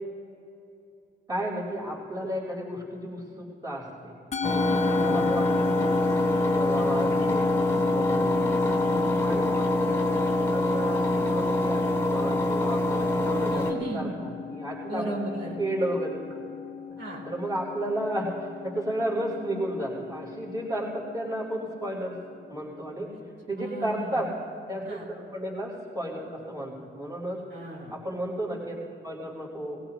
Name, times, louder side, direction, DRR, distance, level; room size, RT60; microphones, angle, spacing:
voice 1, 1.3-4.1 4.7-6.0 6.3-8.6 9.2-10.1 10.5-15.2 15.6-16.5 17.2-18.3 18.6-22.1 22.5-23.1 23.5-24.3 24.7-27.4 27.9-29.8, right 1 dB, 20° right, -4 dB, 4.4 m, -33 dB
Musical instrument, 4.3-22.8, left 7 dB, 35° left, 0.7 m, -36 dB
Engine, 4.4-13.7, left 1 dB, 15° left, 2.2 m, -25 dB
voice 2, 4.7-5.3 8.6-9.2 13.4-14.2 14.8-15.6 17.0-17.2 23.6-24.3 24.8-25.0 27.5-27.9, right 1 dB, 70° right, -4 dB, 4.0 m, -36 dB
20.5 x 16.5 x 3.0 m, 2.6 s
cardioid pair, 90°, 20 cm